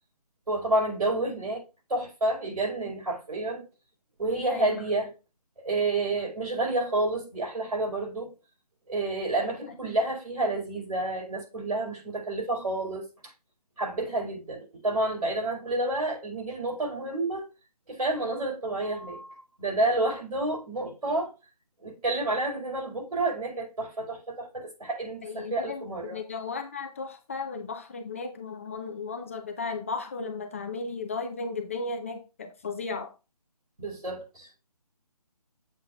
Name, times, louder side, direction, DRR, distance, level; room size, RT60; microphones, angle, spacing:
voice 1, 0.5-1.6 1.9-3.6 4.2-5.1 5.6-8.3 8.9-13.0 13.8-17.5 17.9-19.3 19.6-21.3 21.8-26.2 33.8-34.5, right 2 dB, 70° right, 4.5 m, -29 dB
voice 2, 4.5-4.8 9.4-9.6 25.2-33.1, left 4 dB, 20° left, 0.6 m, -35 dB
7.4 x 7.4 x 2.4 m
figure-of-eight pair, 160°, 20 cm